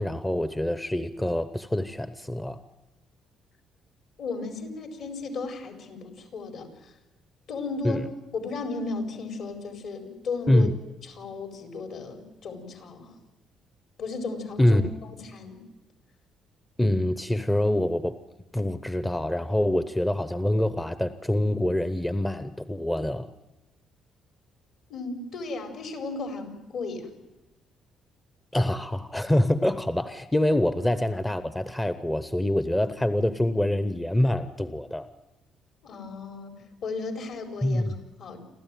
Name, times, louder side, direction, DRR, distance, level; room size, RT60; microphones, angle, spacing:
voice 1, 0.0-2.6 7.8-8.0 10.5-10.7 14.6-14.8 16.8-18.2 18.5-23.3 28.5-35.1 37.6-38.0, left 1 dB, 10° left, 11 dB, 0.8 m, -25 dB
voice 2, 4.2-6.9 7.5-8.1 8.3-10.7 11.0-13.1 14.0-15.6 24.9-27.1 35.8-38.4, left 3 dB, 65° left, 5 dB, 4.7 m, -35 dB
28.5 x 13.0 x 9.2 m, 1.0 s
cardioid pair, 110°, 0 cm